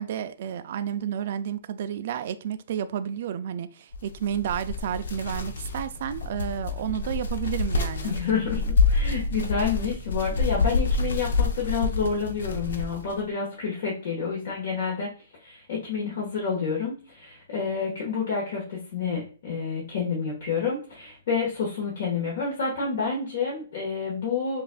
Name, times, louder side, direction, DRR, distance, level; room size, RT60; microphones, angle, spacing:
voice 1, 0.0-8.2, right 9 dB, 55° right, 0.3 m, -31 dB
sound 1, 3.9-13.2, left 4 dB, 80° left, 0.6 m, -27 dB
voice 2, 8.0-15.1 15.4-24.6, left 5 dB, 55° left, 1.3 m, -29 dB
5.4 x 2.4 x 2.3 m
hypercardioid pair, 155°, 0 cm